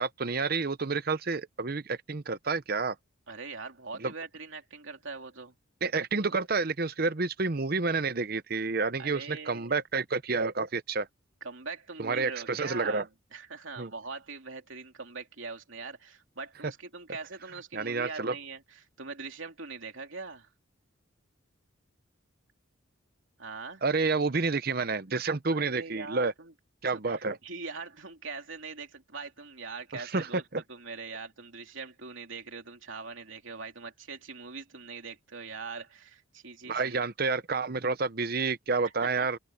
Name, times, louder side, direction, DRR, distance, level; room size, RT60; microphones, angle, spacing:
voice 1, 0.0-2.9 4.0-4.1 5.8-11.1 12.0-13.0 13.8-13.9 17.7-18.3 23.8-26.3 26.8-27.4 30.1-30.3 30.5-30.6 36.7-39.4, right 4 dB, 45° right, 0.8 m, -29 dB
voice 2, 3.3-5.5 9.0-9.8 11.4-20.5 23.4-23.8 25.5-26.5 26.9-30.4 30.7-37.0 38.8-39.3, right 4 dB, 70° right, 3.0 m, -42 dB
head